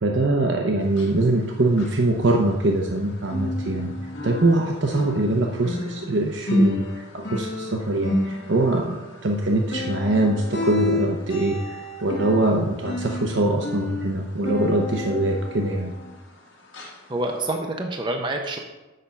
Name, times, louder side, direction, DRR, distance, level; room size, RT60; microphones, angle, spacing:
voice 1, 0.0-3.9 4.2-6.8 7.1-9.0 9.2-15.9, right 2 dB, 60° right, 1 dB, 0.7 m, -23 dB
sound 1, 0.8-3.0 3.2-16.4 16.7-17.0 17.5-17.6, left 2 dB, 60° left, 1.7 m, -30 dB
voice 2, 17.1-18.6, right 2 dB, 25° right, 3 dB, 0.6 m, -27 dB
7.1 x 6.6 x 5.2 m, 1.1 s
head